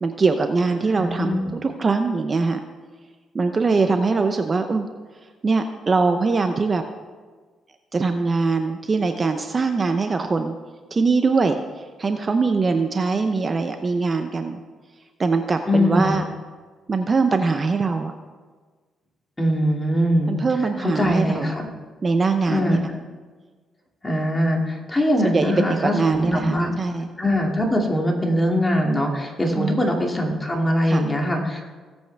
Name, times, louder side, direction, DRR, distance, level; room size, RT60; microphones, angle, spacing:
voice 1, 0.0-2.6 3.3-4.9 5.4-6.8 7.9-10.6 10.9-11.5 12.0-14.6 15.2-16.2 16.9-18.1 20.3-21.5 22.0-22.8 25.3-27.1 29.6-29.7 30.9-31.0, right 4 dB, 35° right, 6 dB, 0.7 m, -22 dB
voice 2, 1.0-1.4 15.7-16.2 19.4-20.3 20.6-21.7 22.5-22.8 24.0-26.7 27.2-31.6, equal, 15° left, 0 dB, 2.4 m, -22 dB
19.0 x 8.2 x 3.5 m, 1.4 s
cardioid pair, 90°, 0 cm